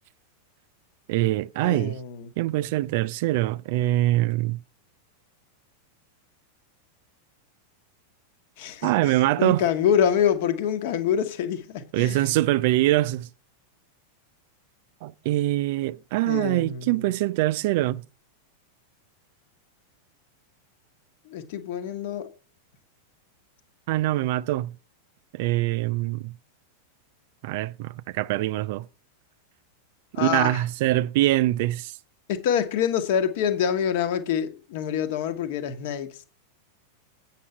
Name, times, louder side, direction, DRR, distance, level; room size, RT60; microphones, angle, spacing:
voice 1, 1.1-2.0 2.4-4.6 8.8-9.6 11.9-13.3 15.0-18.0 23.9-24.7 25.3-26.3 27.4-28.9 30.2-32.0, right 16 dB, 50° right, 0.3 m, -24 dB
voice 2, 1.6-2.3 8.6-12.2 16.2-17.2 21.2-22.3 30.1-30.6 32.3-36.3, left 8 dB, 50° left, 1.2 m, -26 dB
8.4 x 6.0 x 5.6 m
figure-of-eight pair, 90°, 0 cm